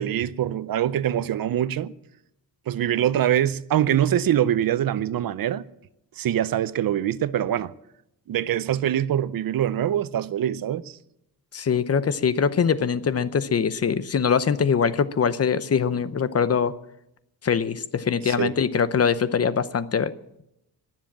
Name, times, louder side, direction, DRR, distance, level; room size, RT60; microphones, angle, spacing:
voice 1, 0.0-1.9 2.7-5.6 6.2-7.7 8.3-11.0 18.2-18.6, right 11 dB, 60° right, 0.7 m, -24 dB
voice 2, 11.5-16.7 17.4-20.1, left 6 dB, 35° left, 0.7 m, -23 dB
22.0 x 7.5 x 7.4 m
cardioid pair, 125°, 40 cm